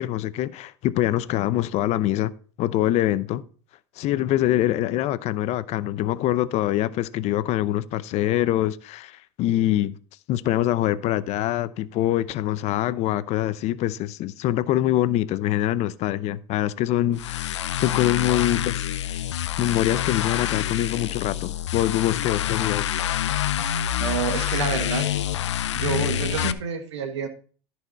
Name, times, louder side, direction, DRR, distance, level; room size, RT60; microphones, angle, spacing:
voice 1, 0.0-2.3 2.6-3.4 4.0-10.0 10.3-19.2 19.6-22.9, left 13 dB, 50° left, 0.7 m, -24 dB
sound 1, 17.1-26.5, left 11 dB, 90° left, 0.6 m, -27 dB
voice 2, 24.0-25.1 25.7-27.3, right 6 dB, 85° right, 1.5 m, -28 dB
14.0 x 4.7 x 4.1 m
hypercardioid pair, 90°, 15 cm